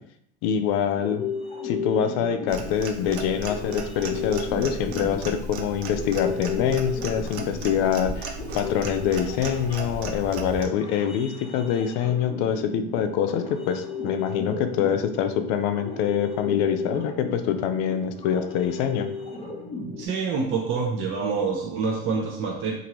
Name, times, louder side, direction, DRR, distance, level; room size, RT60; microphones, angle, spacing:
voice 1, 0.4-1.2 1.6-19.1, left 8 dB, 65° left, 8 dB, 0.4 m, -25 dB
sound 1, 0.7-20.1, left 5 dB, 20° left, 0.8 m, -35 dB
Clock, 2.5-10.7, right 3 dB, 85° right, 0.5 m, -36 dB
voice 2, 20.0-22.7, right 5 dB, 40° right, -1 dB, 0.7 m, -26 dB
2.8 x 2.6 x 3.0 m, 0.70 s
supercardioid pair, 90°, 31 cm